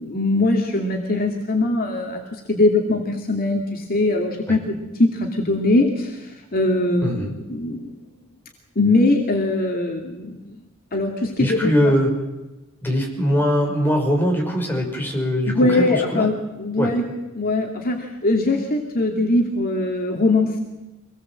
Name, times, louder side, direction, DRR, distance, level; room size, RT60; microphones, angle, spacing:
voice 1, 0.0-7.9 8.8-10.4 10.9-11.7 15.5-17.1 17.3-20.6, left 2 dB, 45° left, 1 dB, 2.5 m, -21 dB
voice 2, 11.4-12.1 12.8-16.3 16.8-16.9, equal, 10° left, 0 dB, 5.8 m, -21 dB
25.0 x 19.0 x 7.7 m, 1.1 s
head